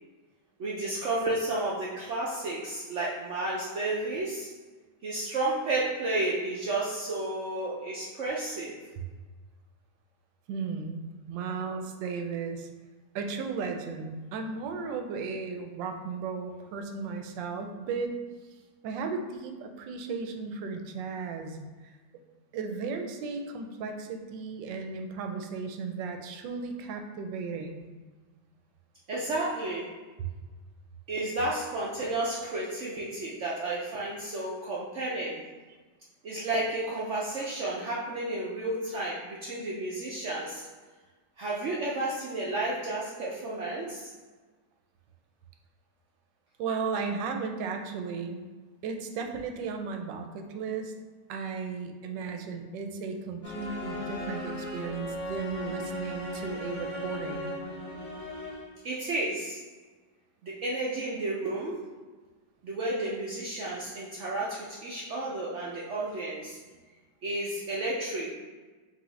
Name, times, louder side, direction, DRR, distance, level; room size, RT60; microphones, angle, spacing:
voice 1, 0.6-4.5 5.0-8.8 29.1-29.9 31.1-35.4 36.2-40.6 41.4-44.1 58.8-59.6 60.4-61.8 62.6-66.6 67.2-68.3, right 2 dB, 70° right, -5 dB, 0.7 m, -32 dB
voice 2, 10.5-12.7 13.1-18.1 18.8-21.6 22.5-27.9 30.2-30.3 46.6-48.4 48.8-50.9 51.3-57.5, right 5 dB, 90° right, 5 dB, 1.3 m, -35 dB
sound 1, 53.4-58.8, equal, 35° left, 0.8 m, -37 dB
5.5 x 2.6 x 3.2 m, 1.3 s
omnidirectional pair, 1.9 m